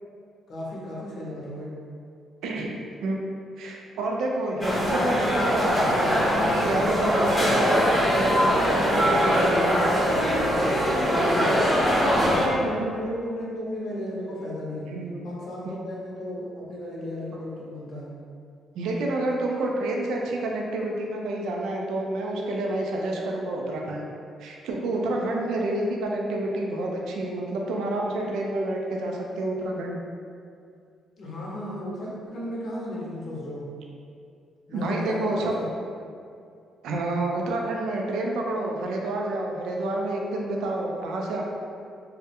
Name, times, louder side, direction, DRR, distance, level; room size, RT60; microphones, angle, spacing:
voice 1, 0.5-1.7 11.9-14.9 15.2-18.1 31.2-33.6 34.7-35.7, left 1 dB, 65° left, -5 dB, 0.6 m, -34 dB
voice 2, 2.4-3.2 3.6-10.4 12.6-12.7 14.9-15.3 18.7-24.1 24.4-30.0 34.7-35.5 36.8-41.4, right 2 dB, 85° right, -1 dB, 0.3 m, -29 dB
sound 1, 4.6-12.5, equal, 15° left, 0.6 m, -22 dB
2.3 x 2.1 x 2.8 m, 2.4 s
cardioid pair, 90°, 0 cm